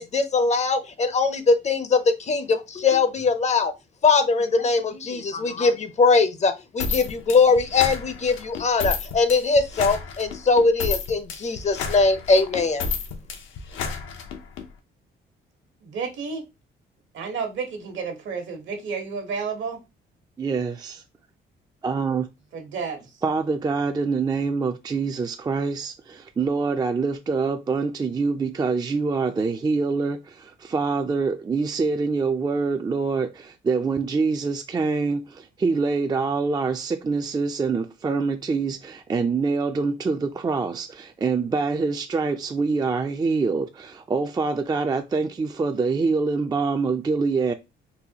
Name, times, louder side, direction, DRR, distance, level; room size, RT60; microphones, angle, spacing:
voice 1, 0.0-3.7 4.0-12.8, left 4 dB, 35° left, 0.5 m, -21 dB
sound 1, 6.8-14.6, left 5 dB, 85° left, 0.7 m, -31 dB
voice 2, 15.8-16.4 17.1-19.8 22.5-23.1, right 5 dB, 75° right, 1.1 m, -31 dB
voice 3, 20.4-21.0 21.8-22.3 23.2-47.5, right 4 dB, 20° right, 0.3 m, -25 dB
4.1 x 2.2 x 2.8 m
cardioid pair, 90°, 20 cm